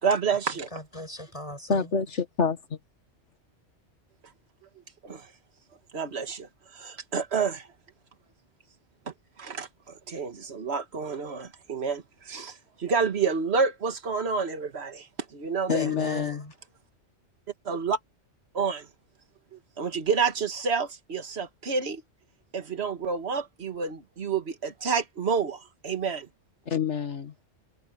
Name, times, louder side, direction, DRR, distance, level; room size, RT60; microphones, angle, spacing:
voice 1, 0.0-0.7 5.0-5.3 5.9-7.7 9.4-9.7 10.1-15.1 15.3-15.9 17.7-18.0 18.5-18.9 19.5-22.0 22.5-26.3, right 5 dB, 60° right, 1.9 m, -29 dB
voice 2, 0.7-1.9 15.7-16.5, left 1 dB, 25° left, 7.8 m, -38 dB
voice 3, 1.7-2.6 15.7-16.4 26.7-27.3, left 6 dB, 75° left, 2.0 m, -27 dB
omnidirectional pair, 1.2 m